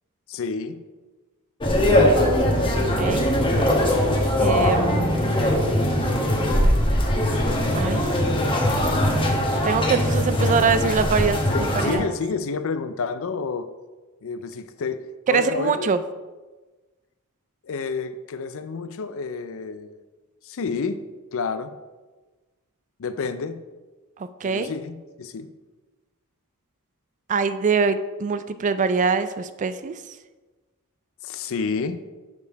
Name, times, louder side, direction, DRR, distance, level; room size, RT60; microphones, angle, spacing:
voice 1, 0.3-0.8 11.5-13.7 14.2-15.9 17.6-20.0 20.4-21.0 21.3-21.8 23.0-23.6 24.4-25.5 31.2-32.0, left 4 dB, 65° left, 11 dB, 0.5 m, -29 dB
sound 1, 1.6-12.0, left 1 dB, 20° left, 1.0 m, -21 dB
voice 2, 3.0-3.3 4.4-5.3 7.7-8.1 9.6-11.4 11.7-12.1 15.3-16.0 24.4-24.7 27.3-29.9, right 5 dB, 35° right, 12 dB, 0.3 m, -23 dB
6.6 x 5.3 x 4.6 m, 1.2 s
head